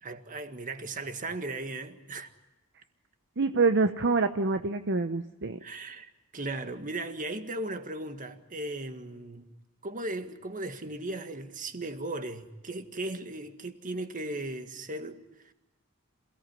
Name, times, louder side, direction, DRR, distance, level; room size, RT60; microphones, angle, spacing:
voice 1, 0.0-2.3 5.6-9.5 9.8-15.5, right 2 dB, 40° right, 1.8 m, -37 dB
voice 2, 3.4-5.6, right 4 dB, 55° right, 0.8 m, -26 dB
28.0 x 17.5 x 9.9 m
head